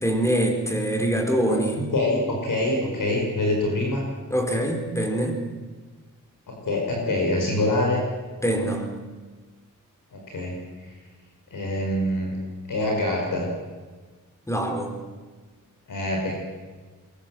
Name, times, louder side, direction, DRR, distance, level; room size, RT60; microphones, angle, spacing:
voice 1, 0.0-1.8 4.3-5.4 8.4-8.9 14.5-15.0, right 1 dB, 10° left, 3 dB, 4.4 m, -24 dB
voice 2, 1.5-4.1 6.5-8.1 10.1-10.9 11.5-12.4 12.7-13.5 15.9-16.3, left 1 dB, 75° left, 0 dB, 5.5 m, -25 dB
23.0 x 22.5 x 7.7 m, 1.4 s
wide cardioid pair, 115°, 32 cm